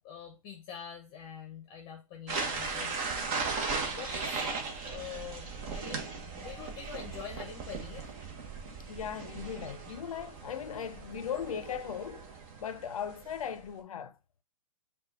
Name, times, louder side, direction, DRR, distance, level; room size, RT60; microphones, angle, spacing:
voice 1, 0.0-2.9 3.9-4.5 4.9-8.1, left 7 dB, 30° left, 0.8 m, -45 dB
sound 1, 2.3-13.7, right 4 dB, 35° right, 1.1 m, -38 dB
voice 2, 8.8-12.3 12.6-14.2, left 8 dB, 80° left, 0.6 m, -38 dB
5.3 x 2.4 x 4.1 m
hypercardioid pair, 145°, 18 cm